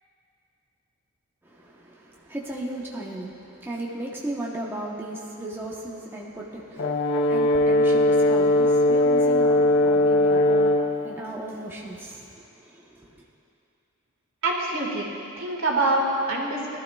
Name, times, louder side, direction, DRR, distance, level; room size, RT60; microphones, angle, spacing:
voice 1, 1.4-13.2, right 1 dB, 10° right, -4 dB, 1.0 m, -36 dB
Brass instrument, 6.8-11.0, left 1 dB, 65° left, 0.8 m, -20 dB
voice 2, 14.4-15.1 15.4-16.8, right 2 dB, 75° right, -2 dB, 1.9 m, -25 dB
20.5 x 12.0 x 2.3 m, 2.6 s
head